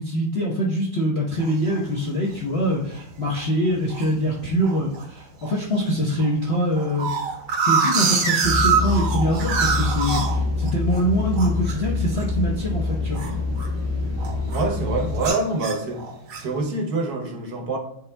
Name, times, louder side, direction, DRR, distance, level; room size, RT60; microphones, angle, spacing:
voice 1, 0.0-7.1 7.7-13.2, equal, 45° left, -6 dB, 0.9 m, -24 dB
sound 1, 1.4-1.8 2.3-2.4 2.7-3.0 3.4-4.1 4.6-5.0 5.4-5.5 5.8-5.9 6.2-11.0 11.3-13.9 14.2-14.7 15.2-16.6, right 5 dB, 85° right, 1.8 m, -25 dB
sound 2, 8.4-15.3, left 3 dB, 10° left, 0.9 m, -26 dB
voice 2, 14.5-16.0 16.4-17.8, right 3 dB, 60° right, 2 dB, 1.2 m, -26 dB
10.5 x 4.3 x 2.2 m, 0.77 s
omnidirectional pair, 2.2 m